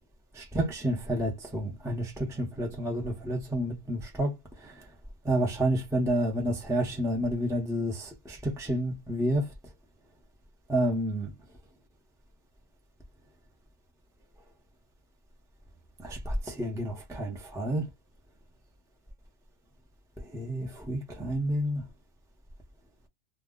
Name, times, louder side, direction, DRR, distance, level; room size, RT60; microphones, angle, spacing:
voice 1, 0.4-4.3 4.6-4.7 5.2-9.5 10.7-11.3 16.0-17.8 20.3-21.8, right 1 dB, 5° right, 0.6 m, -29 dB
2.3 x 2.2 x 3.6 m
omnidirectional pair, 1.1 m